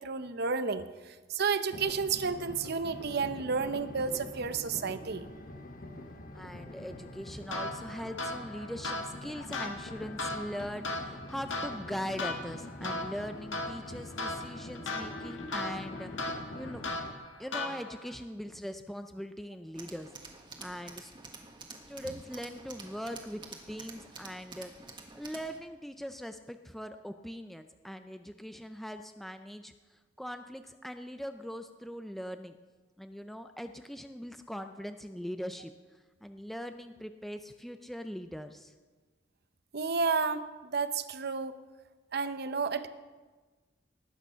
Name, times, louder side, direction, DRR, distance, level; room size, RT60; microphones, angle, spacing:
voice 1, 0.0-5.3 39.7-41.6 42.1-42.9, right 5 dB, 55° right, 12 dB, 0.8 m, -31 dB
sound 1, 1.7-17.1, left 1 dB, 50° left, 1.2 m, -45 dB
voice 2, 6.3-16.9 17.4-20.1 20.6-21.1 21.9-23.4 23.7-24.7 25.1-32.6 33.0-35.7 36.2-38.7, equal, ahead, 7 dB, 0.5 m, -41 dB
sound 2, 7.5-18.1, left 2 dB, 90° left, 1.7 m, -38 dB
Tools, 19.7-25.6, right 3 dB, 25° right, 1.5 m, -49 dB
19.0 x 8.7 x 5.6 m, 1.3 s
head